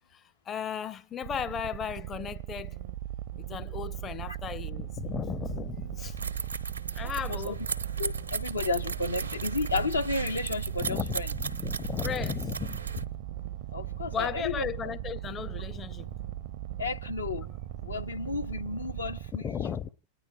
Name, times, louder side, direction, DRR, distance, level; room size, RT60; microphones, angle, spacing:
voice 1, 0.1-2.7 3.4-6.2 6.9-7.6 10.8-13.1 14.1-16.1 19.4-19.9, left 7 dB, 25° left, 0.5 m, -35 dB
sound 1, 1.2-19.3, right 12 dB, 50° right, 0.6 m, -38 dB
sound 2, 6.0-13.0, right 4 dB, 80° right, 0.9 m, -36 dB
voice 2, 7.0-7.5 8.0-11.3 13.7-14.7 16.8-17.5 17.8-19.4, left 3 dB, 80° left, 0.6 m, -32 dB
29.0 x 10.0 x 2.6 m
figure-of-eight pair, 90°, 0 cm